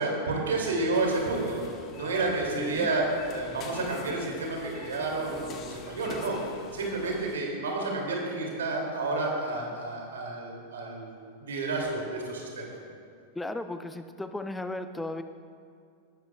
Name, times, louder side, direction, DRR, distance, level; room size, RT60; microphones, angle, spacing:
voice 1, 0.0-1.6 1.9-6.4 6.7-12.7, right 2 dB, 65° right, -1 dB, 2.7 m, -30 dB
sound 1, 0.9-7.4, left 5 dB, 35° left, 1.0 m, -45 dB
voice 2, 2.5-2.9 13.3-15.2, left 2 dB, 5° left, 9 dB, 0.6 m, -35 dB
19.0 x 12.5 x 2.4 m, 2.3 s
figure-of-eight pair, 90°, 0 cm